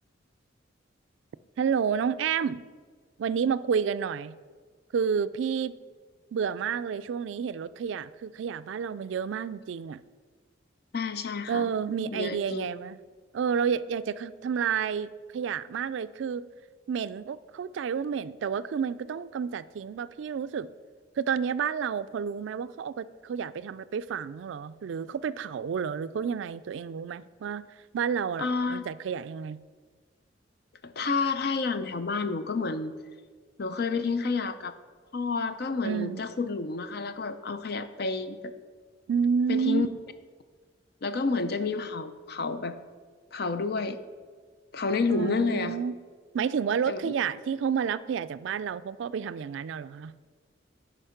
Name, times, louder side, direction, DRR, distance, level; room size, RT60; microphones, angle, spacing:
voice 1, 1.6-2.6 3.2-4.3 4.9-5.8 6.3-10.0 11.5-13.0 13.3-16.4 16.9-20.7 21.2-27.7 27.9-29.6 35.8-36.2 39.1-39.9 45.1-45.9 46.3-50.1, right 7 dB, 75° right, 16 dB, 0.3 m, -30 dB
voice 2, 10.9-11.7 12.0-12.8 28.4-28.8 30.8-32.9 33.6-34.7 35.1-38.5 39.5-39.9 41.0-42.8 43.3-44.0 44.7-45.8 46.9-47.1, left 4 dB, 55° left, 11 dB, 0.6 m, -30 dB
10.0 x 5.1 x 5.7 m, 1.6 s
head